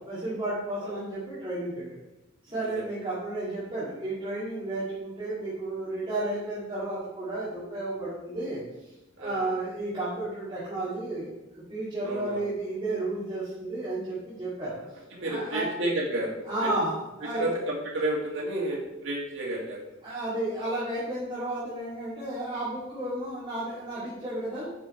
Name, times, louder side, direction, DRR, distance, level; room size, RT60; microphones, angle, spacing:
voice 1, 0.0-2.0 2.4-8.6 9.2-14.8 15.2-15.7 16.4-17.5 20.0-24.7, right 2 dB, 25° right, -12 dB, 2.4 m, -32 dB
voice 2, 9.2-9.5 12.0-12.4 14.6-14.7 15.1-16.7 17.3-19.8, right 1 dB, 70° right, -2 dB, 2.1 m, -31 dB
8.4 x 5.5 x 4.4 m, 0.97 s
head